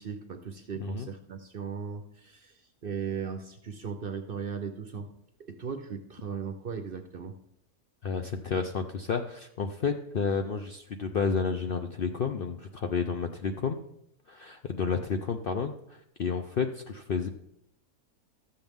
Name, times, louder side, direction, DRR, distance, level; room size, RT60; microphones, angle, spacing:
voice 1, 0.0-5.1 5.4-7.4, right 6 dB, 50° right, 7 dB, 0.7 m, -37 dB
voice 2, 8.0-13.8 14.3-17.3, left 5 dB, 60° left, 5 dB, 0.6 m, -31 dB
13.0 x 7.8 x 3.5 m, 0.76 s
omnidirectional pair, 1.5 m